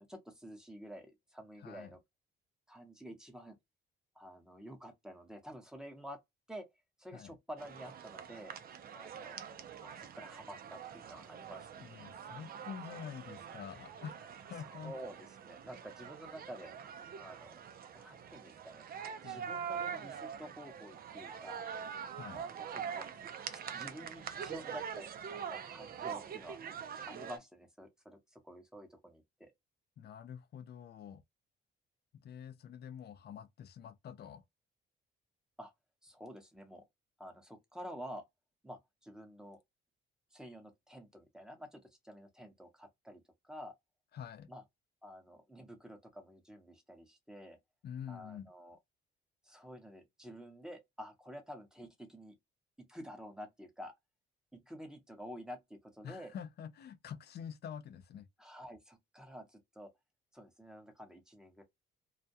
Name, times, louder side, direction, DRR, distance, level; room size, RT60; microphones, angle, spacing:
voice 1, 0.0-2.0 2.7-3.6 4.2-6.2 6.5-6.7 7.0-8.5 8.9-9.4 9.8-11.7 14.7-16.7 17.2-17.5 17.9-18.9 19.2-21.7 22.3-23.1 23.5-26.6 27.0-29.5 35.6-35.7 36.0-36.8 37.2-38.2 38.6-39.6 40.3-43.7 44.5-44.6 45.0-47.6 48.1-48.8 49.4-52.3 52.8-53.9 54.5-56.4 58.4-59.9 60.3-61.6, equal, 5° right, 0.8 m, -50 dB
voice 2, 1.6-1.9 7.1-7.3 11.8-14.9 19.2-19.6 22.1-22.4 30.0-31.2 32.2-34.4 44.1-44.5 47.8-48.5 56.0-58.3, left 8 dB, 55° left, 0.5 m, -47 dB
sound 1, 7.6-27.4, right 7 dB, 50° right, 0.5 m, -44 dB
2.3 x 2.1 x 2.6 m
cardioid pair, 90°, 20 cm